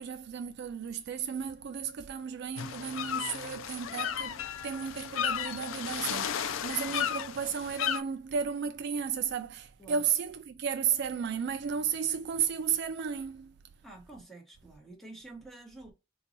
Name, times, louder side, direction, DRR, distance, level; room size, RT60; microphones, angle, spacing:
voice 1, 0.0-13.5, right 7 dB, 50° right, 0.3 m, -33 dB
sound 1, 2.6-8.0, left 9 dB, 65° left, 0.3 m, -34 dB
voice 2, 13.8-15.9, right 2 dB, ahead, 1.0 m, -49 dB
3.9 x 2.2 x 4.0 m
head